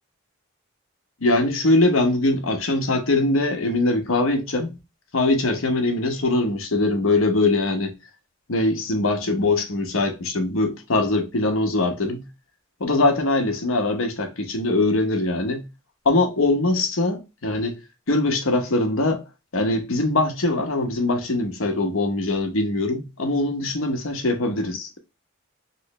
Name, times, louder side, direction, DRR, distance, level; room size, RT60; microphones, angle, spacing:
voice 1, 1.2-4.7 5.1-7.9 8.5-12.2 12.8-15.6 16.0-17.8 18.1-19.2 19.5-25.0, left 2 dB, 85° left, 1.0 m, -22 dB
3.2 x 3.1 x 3.0 m
head